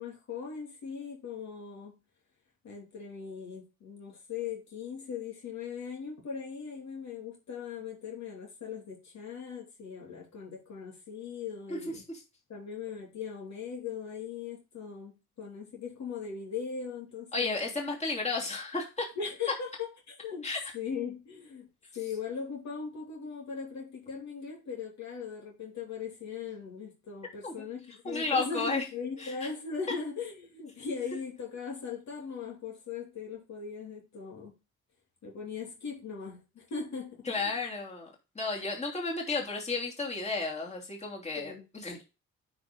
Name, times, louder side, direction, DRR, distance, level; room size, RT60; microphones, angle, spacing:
voice 1, 0.0-2.0 2.6-12.0 12.5-17.5 19.2-20.5 20.7-21.7 21.9-34.6 35.2-37.5 41.4-41.7, left 6 dB, 65° left, 2.9 m, -39 dB
voice 2, 17.3-19.1 20.4-20.6 27.4-27.6 28.0-28.8 29.2-29.5 37.3-42.0, left 3 dB, 20° left, 2.9 m, -33 dB
9.5 x 5.1 x 3.8 m
cardioid pair, 90°, 30 cm